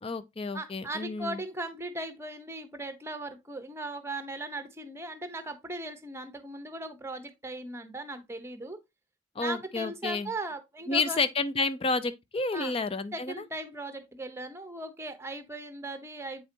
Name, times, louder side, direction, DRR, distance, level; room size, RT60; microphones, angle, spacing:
voice 1, 0.0-1.4 9.4-10.3 10.9-13.5, left 3 dB, 30° left, 0.5 m, -30 dB
voice 2, 0.5-8.8 9.4-11.2 12.5-12.8 13.1-16.4, right 2 dB, 15° right, 0.8 m, -38 dB
8.2 x 4.8 x 2.7 m
head